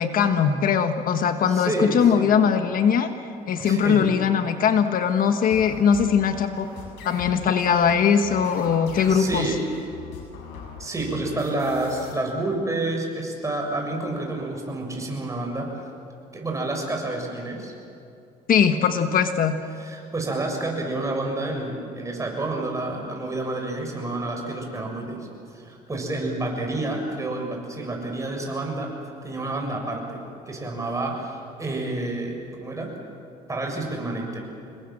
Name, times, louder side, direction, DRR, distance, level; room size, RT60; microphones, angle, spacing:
voice 1, 0.0-3.1 3.5-6.7 7.0-9.5 18.5-19.5, left 7 dB, 55° left, 7 dB, 1.4 m, -20 dB
voice 2, 1.5-2.3 3.6-4.1 9.1-9.6 10.8-15.7 16.3-17.7 19.7-25.3 25.5-28.9 29.2-32.9 33.5-34.4, right 2 dB, 20° right, 1 dB, 7.0 m, -29 dB
sound 1, 5.5-12.1, left 6 dB, 90° left, 7.3 m, -41 dB
27.5 x 21.5 x 7.7 m, 2.5 s
cardioid pair, 110°, 17 cm